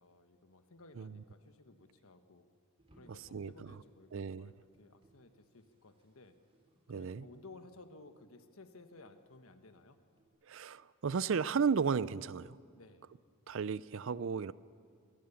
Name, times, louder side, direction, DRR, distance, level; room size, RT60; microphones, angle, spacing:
voice 1, 0.0-2.5 2.9-6.3 6.9-10.0 12.7-13.1, left 2 dB, 75° left, 8 dB, 1.3 m, -57 dB
sound 1, 2.8-10.3, right 1 dB, 25° right, 3.1 m, -69 dB
voice 2, 4.1-4.5 6.9-7.2 10.5-12.6 13.5-14.5, right 6 dB, 60° right, 19 dB, 0.4 m, -34 dB
23.0 x 17.0 x 7.0 m, 2.1 s
head